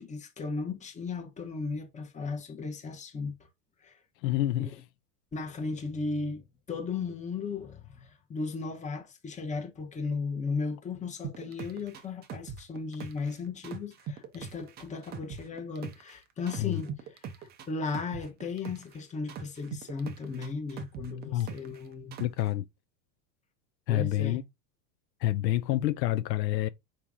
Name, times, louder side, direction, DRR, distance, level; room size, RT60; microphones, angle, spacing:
voice 1, 0.0-3.5 3.8-4.0 4.6-4.8 5.3-22.2 23.9-24.4, left 4 dB, 15° left, 0.9 m, -36 dB
voice 2, 4.2-4.7 16.6-16.8 21.3-21.5 22.2-22.6 23.9-24.4 25.2-26.7, left 14 dB, 80° left, 0.6 m, -28 dB
sound 1, 11.2-13.3 13.6-16.1 16.5-18.9 19.3-21.8 22.1-22.5, right 6 dB, 20° right, 0.5 m, -41 dB
4.7 x 2.9 x 3.5 m
supercardioid pair, 125°, 50 cm